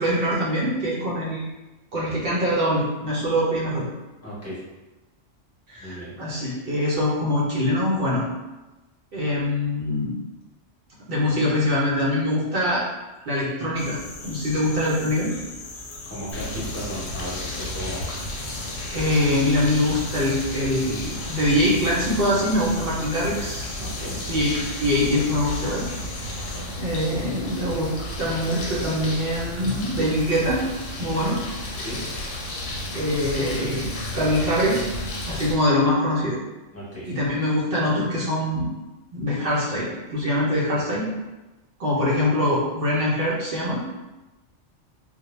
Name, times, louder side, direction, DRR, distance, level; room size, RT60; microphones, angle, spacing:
voice 1, 0.0-1.5 1.9-3.8 5.7-8.3 9.1-10.1 11.1-12.8 13.2-14.0 14.2-15.3 18.9-23.8 24.3-24.5 24.8-25.9 26.8-30.6 31.0-31.4 32.9-34.9 35.3-36.4 37.1-38.7 39.1-41.1 41.8-43.9, left 1 dB, 60° right, -5 dB, 0.7 m, -23 dB
voice 2, 4.2-4.6 5.8-6.1 16.1-18.0 23.8-24.2 31.8-32.0 36.7-37.1, equal, 15° left, -9 dB, 0.8 m, -35 dB
sound 1, 13.8-26.6, left 2 dB, 60° left, 0.7 m, -39 dB
sound 2, 16.3-35.5, left 1 dB, 85° left, 1.0 m, -33 dB
2.1 x 2.0 x 2.9 m, 1.1 s
omnidirectional pair, 1.3 m